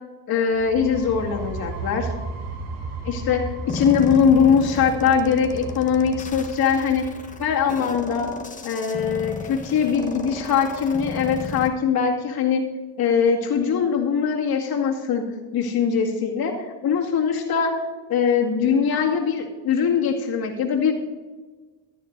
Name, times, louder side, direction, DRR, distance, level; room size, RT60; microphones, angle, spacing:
voice 1, 0.3-2.1 3.0-7.0 7.4-8.3 8.6-12.6 13.0-15.3 15.5-17.8 18.1-20.9, left 6 dB, 60° left, -1 dB, 2.2 m, -21 dB
sound 1, 0.5-8.2, right 3 dB, 90° right, 3.4 m, -35 dB
sound 2, 3.7-11.7, left 3 dB, 20° left, 1.1 m, -34 dB
14.5 x 12.5 x 2.7 m, 1.3 s
supercardioid pair, 95°, 42 cm